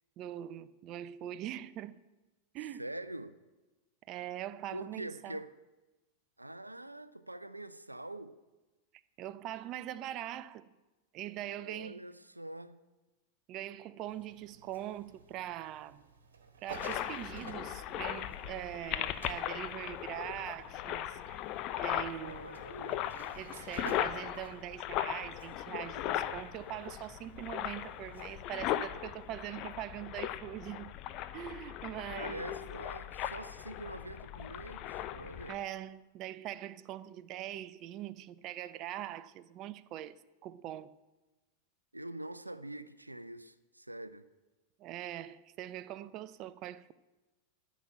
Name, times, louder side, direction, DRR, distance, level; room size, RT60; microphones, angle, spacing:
voice 1, 0.2-2.0 2.5-2.9 4.1-5.4 9.2-10.7 11.1-12.1 13.5-16.1 16.6-21.4 21.8-22.6 23.3-31.0 31.3-32.6 35.5-40.1 40.4-40.9 44.8-46.9, right 12 dB, 35° right, 0.5 m, -42 dB
voice 2, 2.8-3.4 4.7-5.5 6.4-8.4 11.6-12.8 22.2-23.2 32.1-35.6 41.9-44.3, right 1 dB, 85° right, 0.5 m, -44 dB
sound 1, 14.1-30.1, right 4 dB, 65° right, 1.6 m, -54 dB
sound 2, 16.7-35.6, left 12 dB, 40° left, 0.7 m, -38 dB
13.0 x 6.1 x 9.2 m
figure-of-eight pair, 90°, 0 cm